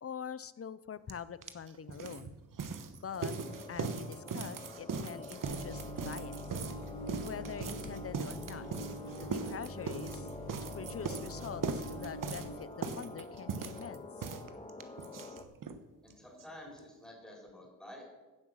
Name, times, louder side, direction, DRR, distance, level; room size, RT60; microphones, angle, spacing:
voice 1, 0.0-2.3 2.9-6.5 7.2-8.7 9.2-10.3 10.6-14.3, left 7 dB, 40° left, 17 dB, 0.6 m, -44 dB
sound 1, 1.1-1.2 1.4-15.8 16.1-16.2 16.4-16.5 16.8-16.9, right 5 dB, 60° right, 1.1 m, -40 dB
sound 2, 3.1-15.4, left 2 dB, 20° left, 1.3 m, -48 dB
sound 3, 5.4-12.5, equal, 75° left, 2.2 m, -45 dB
voice 2, 16.0-18.0, left 1 dB, ahead, -2 dB, 3.9 m, -50 dB
16.0 x 7.8 x 6.4 m, 1.1 s
wide cardioid pair, 120°, 36 cm